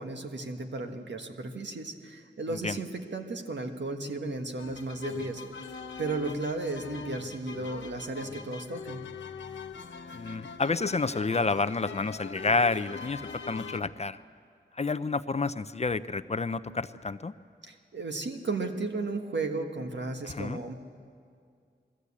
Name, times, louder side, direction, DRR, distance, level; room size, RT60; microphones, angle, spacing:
voice 1, 0.0-5.6 6.0-9.1 17.7-20.7, right 3 dB, 65° right, 4 dB, 1.5 m, -34 dB
sound 1, 4.6-13.8, left 5 dB, 75° left, 1.0 m, -42 dB
voice 2, 10.1-13.2 13.5-14.2 14.8-17.3 20.3-20.6, left 3 dB, 35° left, 12 dB, 0.5 m, -29 dB
21.0 x 15.0 x 8.4 m, 2.2 s
wide cardioid pair, 85°, 19 cm